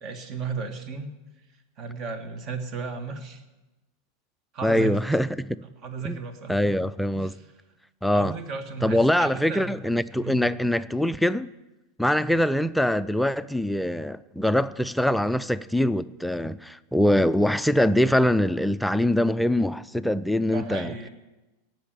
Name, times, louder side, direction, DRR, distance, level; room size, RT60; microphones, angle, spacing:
voice 1, 0.0-1.1 1.8-3.4 4.5-5.0 5.8-6.6 7.1-7.5 8.1-9.8 10.2-10.5 20.5-21.1, right 5 dB, 40° right, 1.8 m, -34 dB
voice 2, 4.6-5.6 6.0-6.2 6.5-7.3 8.0-8.4 8.8-11.5 12.0-20.9, left 1 dB, ahead, 0.4 m, -23 dB
18.0 x 6.2 x 8.9 m
figure-of-eight pair, 90°, 0 cm